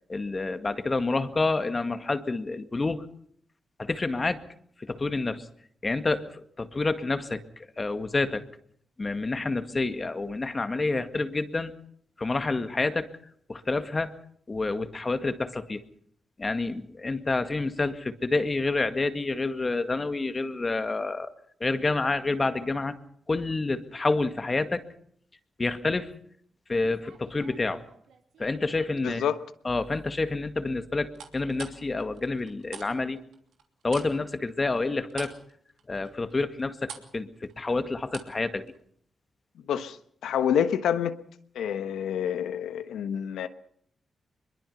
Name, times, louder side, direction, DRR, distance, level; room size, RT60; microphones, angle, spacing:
voice 1, 0.1-3.1 3.8-4.4 4.8-5.5 5.8-8.4 9.0-11.7 12.2-13.1 13.5-14.1 14.5-15.8 16.4-21.3 21.6-23.0 23.3-24.9 25.6-26.1 26.7-27.8 28.4-29.2 29.6-33.2 33.8-35.3 35.9-38.7, left 3 dB, 35° left, 2.0 m, -28 dB
sound 1, 26.8-28.5 28.9-29.4 31.1-32.9 33.2-38.4 38.7-38.8, right 7 dB, 85° right, 2.9 m, -46 dB
voice 2, 29.0-29.4 39.7-40.0 40.2-41.2 41.5-43.5, left 9 dB, 90° left, 1.2 m, -27 dB
23.0 x 22.0 x 5.6 m
cardioid pair, 55°, 0 cm